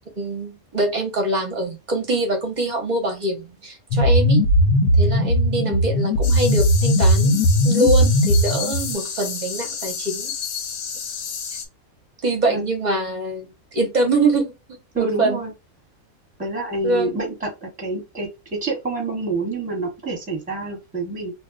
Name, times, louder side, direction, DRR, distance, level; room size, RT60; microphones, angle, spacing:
voice 1, 0.2-4.4 4.9-7.4 7.6-10.3 12.2-14.5 15.0-15.4 16.8-17.2, right 2 dB, 40° right, 0.6 m, -24 dB
sound 1, 3.9-8.9, equal, 85° left, 1.1 m, -18 dB
sound 2, 6.2-11.7, left 6 dB, 65° left, 0.8 m, -31 dB
voice 2, 14.9-15.5 16.4-21.3, right 3 dB, 5° right, 0.9 m, -27 dB
2.5 x 2.2 x 3.6 m
omnidirectional pair, 1.5 m